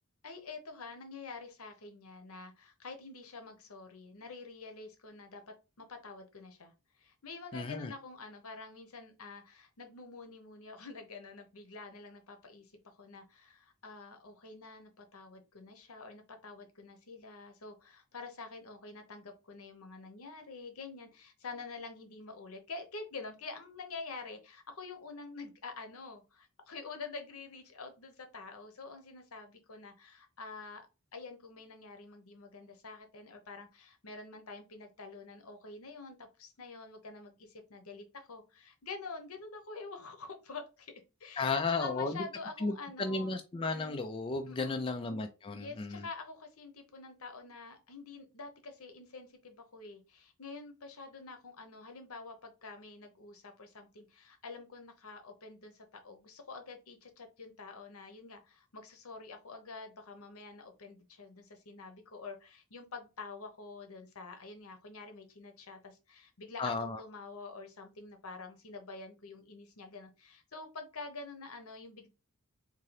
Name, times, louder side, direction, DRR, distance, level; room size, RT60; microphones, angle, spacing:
voice 1, 0.2-40.9 41.2-43.3 44.5-44.8 45.5-72.1, left 4 dB, 70° left, 0.9 m, -47 dB
voice 2, 7.5-7.9 41.4-42.2 42.6-42.7 43.0-46.0 66.6-67.0, left 3 dB, 25° left, 0.3 m, -34 dB
3.7 x 2.7 x 3.2 m
head